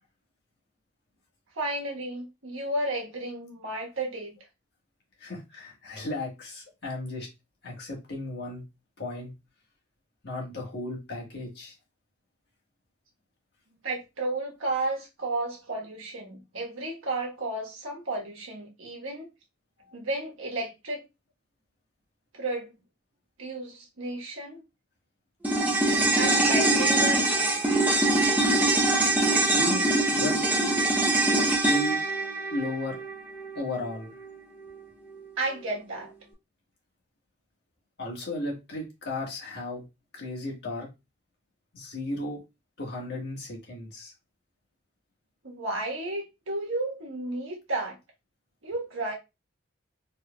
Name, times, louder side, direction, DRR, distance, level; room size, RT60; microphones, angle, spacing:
voice 1, 1.5-4.3 13.8-19.3 19.9-21.1 22.3-22.7 23.4-24.6 26.2-27.6 35.4-36.1 45.4-48.0 48.6-49.1, right 2 dB, 85° right, 1.3 m, -33 dB
voice 2, 5.2-7.3 7.6-8.6 9.0-9.3 10.2-11.7 29.5-30.3 31.4-32.0 32.5-33.0 33.5-34.1 38.0-39.8 40.1-40.9 41.7-42.4 42.8-44.1, left 1 dB, 55° left, 1.5 m, -34 dB
sound 1, 25.4-33.9 34.2-34.3, right 2 dB, 10° right, 0.7 m, -23 dB
4.5 x 3.2 x 2.3 m
head